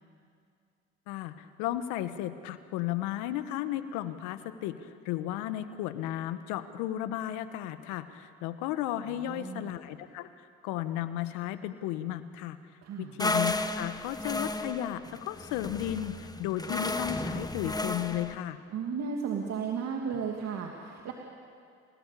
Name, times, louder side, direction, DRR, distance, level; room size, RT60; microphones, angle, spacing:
voice 1, 1.1-10.3 10.6-12.6 13.0-18.6, left 12 dB, 80° left, 11 dB, 1.4 m, -34 dB
voice 2, 9.1-9.8 12.8-13.1 18.7-21.1, right 6 dB, 60° right, 1 dB, 2.7 m, -34 dB
sound 1, 13.2-18.4, left 2 dB, 15° left, 1.4 m, -33 dB
29.5 x 19.0 x 8.4 m, 2.3 s
hypercardioid pair, 65°, 29 cm